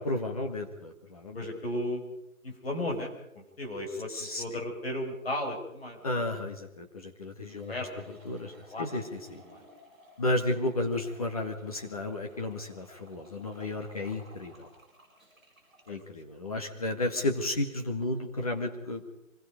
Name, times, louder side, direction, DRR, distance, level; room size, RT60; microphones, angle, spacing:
voice 1, 0.0-1.4 4.1-4.4 6.0-7.7 8.1-9.4 10.2-14.7 15.9-19.1, left 2 dB, 25° left, 3 dB, 1.9 m, -33 dB
voice 2, 1.3-2.0 2.4-6.0 7.7-8.2 8.7-8.9 9.5-9.6 11.9-12.0 15.9-16.0, left 1 dB, 45° left, 2 dB, 5.7 m, -35 dB
sound 1, 7.5-15.9, equal, ahead, 6.9 m, -57 dB
25.5 x 21.0 x 5.2 m, 0.81 s
figure-of-eight pair, 175°, 41 cm